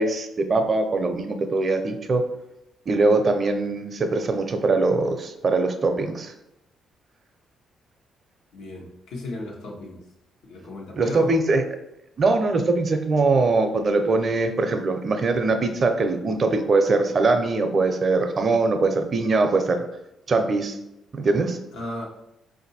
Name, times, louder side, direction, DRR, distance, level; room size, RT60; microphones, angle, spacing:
voice 1, 0.0-2.3 2.9-6.3 11.0-11.6 12.2-19.9 20.3-20.8 21.2-21.6, right 3 dB, 45° right, 7 dB, 0.5 m, -22 dB
voice 2, 8.5-10.0 10.5-11.3 21.7-22.0, left 2 dB, 85° left, -1 dB, 1.0 m, -35 dB
4.6 x 2.6 x 4.1 m, 0.87 s
cardioid pair, 90°, 0 cm